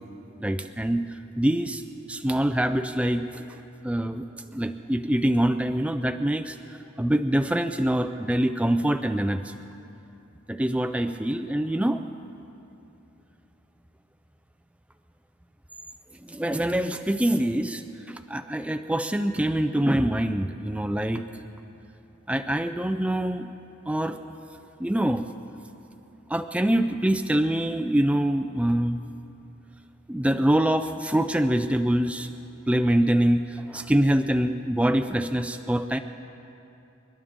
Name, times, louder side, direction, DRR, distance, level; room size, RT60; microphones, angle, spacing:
voice 1, 0.4-1.0 1.4-1.8 2.1-9.5 10.5-12.1 16.2-17.8 18.1-21.2 22.3-23.5 23.9-24.2 24.8-25.2 26.3-29.0 30.1-32.3 32.7-36.0, right 1 dB, 5° right, 8 dB, 0.3 m, -25 dB
28.0 x 12.0 x 3.7 m, 2.8 s
head